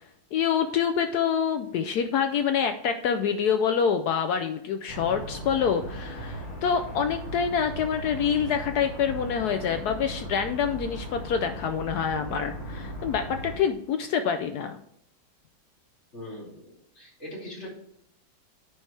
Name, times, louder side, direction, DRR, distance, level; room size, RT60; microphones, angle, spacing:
voice 1, 0.3-14.8, left 7 dB, 80° left, 8 dB, 0.8 m, -26 dB
sound 1, 4.9-13.6, equal, 60° left, 3.6 m, -38 dB
voice 2, 16.1-17.7, left 1 dB, 35° left, -4 dB, 3.0 m, -41 dB
9.8 x 4.6 x 3.2 m, 0.75 s
omnidirectional pair, 2.2 m